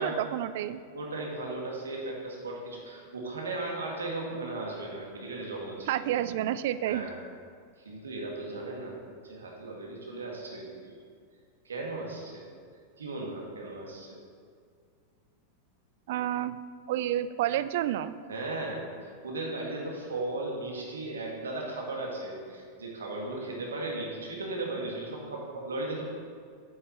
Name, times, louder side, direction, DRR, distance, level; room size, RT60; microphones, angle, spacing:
voice 1, 0.0-0.8 5.9-7.0 16.1-16.6 16.9-18.1, right 12 dB, 55° right, 14 dB, 0.3 m, -29 dB
voice 2, 0.9-5.9 6.8-7.2 7.8-9.0 9.2-10.9 11.6-12.4 13.0-14.2 18.3-26.0, right 2 dB, 70° right, -1 dB, 1.7 m, -36 dB
8.5 x 6.5 x 4.3 m, 2.1 s
figure-of-eight pair, 90°, 0 cm